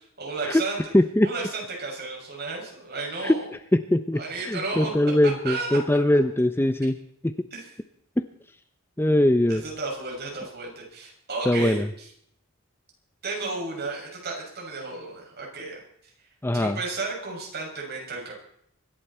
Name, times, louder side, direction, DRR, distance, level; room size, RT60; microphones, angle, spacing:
voice 1, 0.2-0.8 1.2-3.5 4.1-4.9 5.2-5.8 7.5-7.7 9.5-12.1 13.2-15.8 16.5-18.3, right 3 dB, 50° right, -2 dB, 6.9 m, -33 dB
voice 2, 0.9-1.3 3.2-3.4 3.7-7.0 7.2-7.3 8.2-8.3 9.0-9.6 11.5-11.9 16.4-16.8, left 1 dB, 10° left, 10 dB, 0.6 m, -21 dB
24.5 x 11.5 x 4.4 m, 0.67 s
head